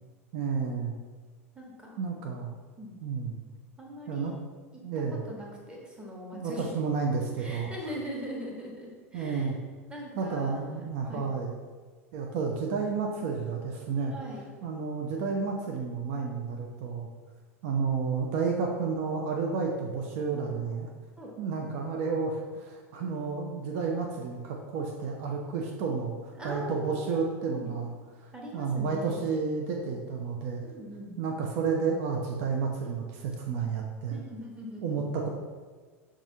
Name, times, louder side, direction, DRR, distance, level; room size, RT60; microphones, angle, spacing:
voice 1, 0.3-1.0 2.0-2.5 3.0-3.4 4.1-4.3 4.8-5.2 6.3-7.7 9.1-9.6 10.2-11.5 12.1-14.1 14.6-17.1 17.6-20.9 21.4-27.9 28.2-30.6 31.2-34.2 34.8-35.3, right 5 dB, 50° right, 1 dB, 0.4 m, -31 dB
voice 2, 1.5-2.0 2.8-3.0 3.8-4.4 4.7-4.8 5.1-6.7 7.4-9.5 9.9-11.3 14.1-14.5 21.2-21.3 26.4-27.7 28.3-29.2 30.6-31.2 34.1-35.1, equal, 10° right, -2 dB, 1.0 m, -41 dB
5.9 x 2.4 x 2.7 m, 1.4 s
figure-of-eight pair, 80°, 8 cm